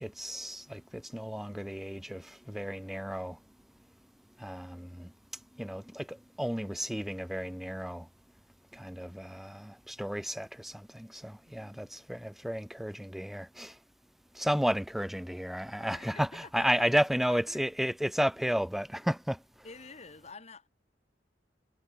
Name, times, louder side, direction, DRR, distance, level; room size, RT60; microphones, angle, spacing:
voice 1, 0.0-3.4 4.4-5.1 5.6-8.1 8.7-13.7 14.4-19.4, equal, ahead, 0.3 m, -33 dB
voice 2, 11.4-12.1 15.8-16.9 17.3-17.9 19.6-20.7, left 4 dB, 40° left, 2.7 m, -49 dB
head